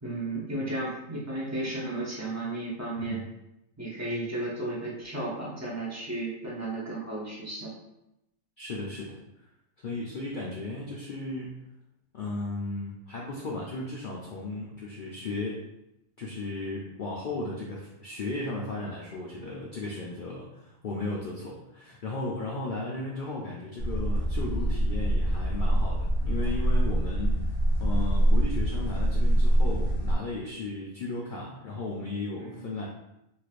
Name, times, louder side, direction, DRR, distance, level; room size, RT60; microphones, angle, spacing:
voice 1, 0.0-3.2 3.8-7.7 32.4-32.7, right 2 dB, 20° right, -5 dB, 0.5 m, -34 dB
voice 2, 8.6-9.2 9.8-11.5 12.1-15.6 16.2-27.5 27.8-32.9, left 2 dB, 70° left, -3 dB, 0.4 m, -35 dB
sound 1, 23.8-30.1, right 1 dB, 50° left, 0.9 m, -25 dB
3.2 x 3.0 x 2.4 m, 0.85 s
omnidirectional pair, 1.4 m